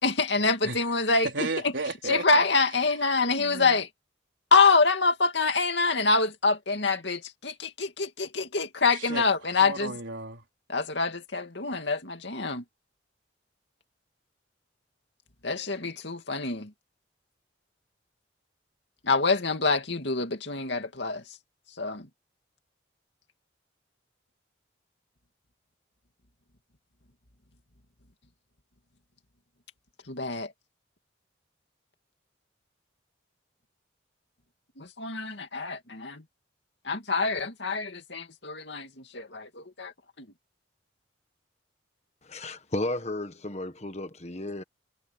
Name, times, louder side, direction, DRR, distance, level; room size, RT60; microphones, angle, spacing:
voice 1, 0.0-1.5 2.1-3.9 4.5-9.9 10.7-12.6 15.4-16.7 19.0-21.2 21.8-22.1 30.1-30.5 34.8-36.2 36.8-39.9, left 4 dB, 65° left, 2.5 m, -26 dB
voice 2, 1.2-2.4 3.3-3.8 8.9-9.3 9.6-10.4, right 3 dB, 75° right, 4.3 m, -33 dB
voice 3, 42.2-44.6, left 2 dB, 35° left, 1.5 m, -33 dB
head